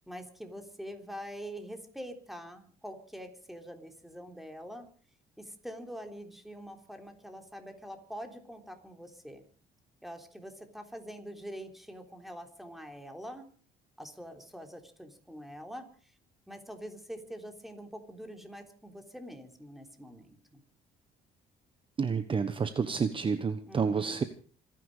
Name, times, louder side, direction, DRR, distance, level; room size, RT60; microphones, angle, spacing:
voice 1, 0.0-4.9 5.4-9.4 10.0-13.5 14.0-16.1 16.5-20.6 23.6-24.3, equal, ahead, 5 dB, 3.5 m, -45 dB
voice 2, 22.0-24.2, right 5 dB, 30° right, 10 dB, 1.2 m, -29 dB
26.0 x 10.5 x 5.0 m, 0.42 s
cardioid pair, 110°, 17 cm